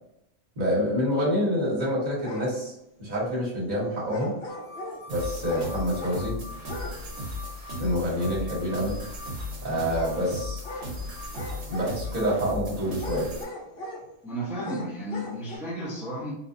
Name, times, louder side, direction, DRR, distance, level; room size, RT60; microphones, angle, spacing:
voice 1, 0.5-2.7 3.0-4.3 5.1-6.3 7.8-9.0 9.6-10.6 11.7-13.3, equal, 35° right, -6 dB, 1.3 m, -27 dB
sound 1, 2.2-2.5 4.1-5.0 5.5-6.3 6.6-7.0 7.2-7.3 9.9-10.2 10.6-10.9 11.3-12.2 12.9-14.1 14.6-15.6, left 2 dB, 50° left, 0.9 m, -39 dB
sound 2, 4.5-12.4, left 3 dB, 90° left, 1.3 m, -46 dB
sound 3, 5.1-13.4, left 1 dB, 80° right, 1.4 m, -36 dB
voice 2, 14.2-16.3, right 1 dB, ahead, -4 dB, 0.5 m, -33 dB
3.9 x 2.5 x 2.6 m, 0.83 s
omnidirectional pair, 1.5 m